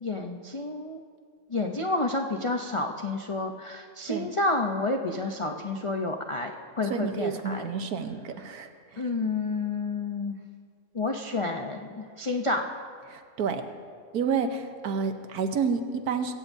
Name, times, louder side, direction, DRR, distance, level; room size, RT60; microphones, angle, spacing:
voice 1, 0.0-1.0 1.5-7.7 9.0-10.3 10.9-12.6, left 2 dB, 40° left, 3 dB, 0.4 m, -30 dB
voice 2, 6.8-9.1 13.1-13.6 14.1-16.3, right 5 dB, 75° right, 7 dB, 1.4 m, -30 dB
23.0 x 16.5 x 2.7 m, 2.1 s
omnidirectional pair, 1.6 m